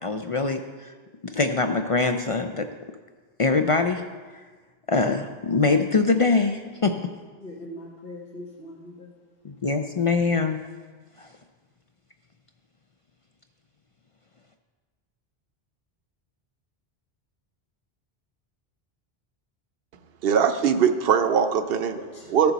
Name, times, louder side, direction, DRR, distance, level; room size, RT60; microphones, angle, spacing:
voice 1, 0.0-0.9 1.2-2.7 3.4-4.0 4.9-7.0 9.4-10.6 11.2-11.3, left 4 dB, 50° left, 6 dB, 0.4 m, -23 dB
voice 2, 7.4-9.2 21.9-22.3, left 1 dB, 70° left, -5 dB, 1.7 m, -41 dB
voice 3, 20.2-22.0 22.3-22.5, right 7 dB, 70° right, 9 dB, 0.9 m, -21 dB
14.5 x 6.7 x 4.0 m, 1.4 s
omnidirectional pair, 1.1 m